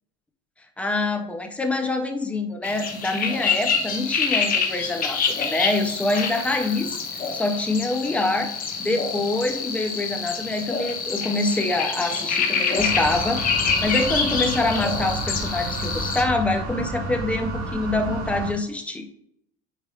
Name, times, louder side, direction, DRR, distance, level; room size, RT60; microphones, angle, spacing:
voice 1, 0.8-7.0 7.3-8.5 8.8-13.4 13.8-19.0, left 2 dB, 5° left, 6 dB, 0.3 m, -25 dB
sound 1, 2.6-16.2, left 5 dB, 25° left, 1.0 m, -26 dB
sound 2, 12.7-18.5, right 1 dB, 50° right, 2.5 m, -31 dB
8.9 x 4.7 x 2.2 m, 0.75 s
cardioid pair, 165°, 34 cm